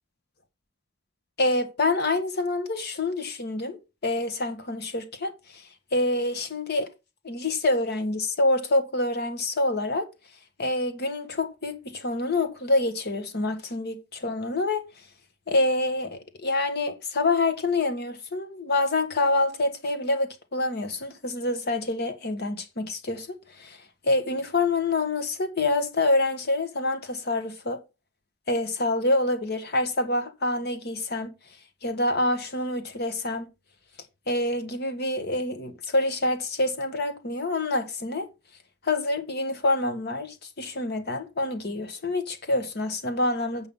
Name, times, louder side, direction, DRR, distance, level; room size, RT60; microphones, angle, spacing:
voice 1, 1.4-5.6 5.9-6.9 7.2-10.1 10.6-14.8 15.5-23.8 24.0-27.8 28.5-31.3 31.8-33.5 34.3-38.3 38.8-43.7, left 2 dB, 55° left, 1.4 m, -26 dB
8.0 x 5.8 x 5.4 m
head